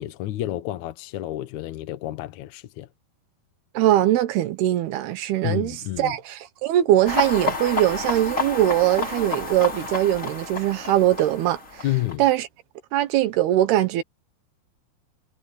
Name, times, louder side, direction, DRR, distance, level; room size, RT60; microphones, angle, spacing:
voice 1, 0.0-2.9 5.4-6.2 11.8-12.3, left 14 dB, 70° left, 1.9 m, -30 dB
voice 2, 3.7-11.8 12.2-12.5 12.9-14.0, right 13 dB, 80° right, 3.0 m, -21 dB
sound 1, 7.1-12.1, left 4 dB, 20° left, 3.2 m, -30 dB
omnidirectional pair, 4.6 m